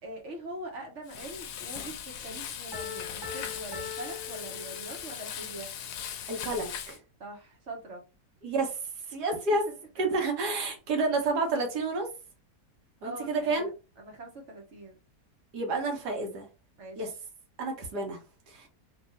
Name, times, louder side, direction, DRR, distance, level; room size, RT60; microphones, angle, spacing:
voice 1, 0.0-5.7 7.2-8.0 9.7-9.8 10.1-10.2 13.0-15.0 16.8-17.2, right 1 dB, 50° right, 1.2 m, -43 dB
Frying (food), 1.1-7.0, left 8 dB, 75° left, 1.1 m, -39 dB
Piano, 2.7-5.3, left 7 dB, 15° left, 0.9 m, -42 dB
voice 2, 6.3-7.0 8.4-8.8 9.1-9.6 10.0-12.1 13.0-13.7 15.5-16.5 17.0-17.1 17.6-18.2 18.5-18.7, right 3 dB, 75° right, 1.6 m, -29 dB
3.5 x 2.6 x 3.1 m
omnidirectional pair, 1.8 m